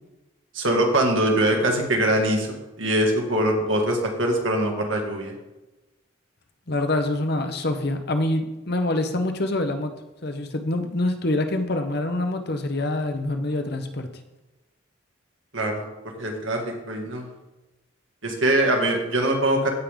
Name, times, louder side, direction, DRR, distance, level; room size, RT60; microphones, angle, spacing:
voice 1, 0.5-5.3 15.5-17.3 18.2-19.7, right 1 dB, 70° right, 1 dB, 2.0 m, -23 dB
voice 2, 6.7-9.9 10.2-14.1, left 2 dB, 50° left, 7 dB, 0.9 m, -25 dB
16.0 x 5.4 x 3.6 m, 1.0 s
head